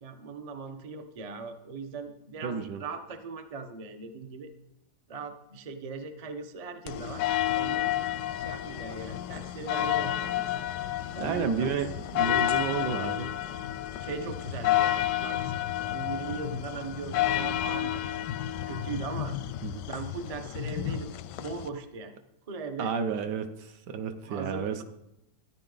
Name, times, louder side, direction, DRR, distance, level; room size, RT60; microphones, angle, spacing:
voice 1, 0.0-4.5 5.1-7.9 8.4-10.5 11.1-11.7 14.0-15.5 15.8-18.0 18.7-19.4 19.8-21.1 21.4-22.1 22.5-22.9 24.2-24.8, right 4 dB, 50° right, 6 dB, 0.4 m, -39 dB
voice 2, 2.4-2.8 11.2-11.9 12.1-13.3 19.6-19.8 22.8-24.8, right 6 dB, 65° right, 8 dB, 1.2 m, -31 dB
sound 1, 6.9-21.7, left 13 dB, 75° left, 1.0 m, -30 dB
13.5 x 9.9 x 3.9 m, 0.87 s
omnidirectional pair, 2.3 m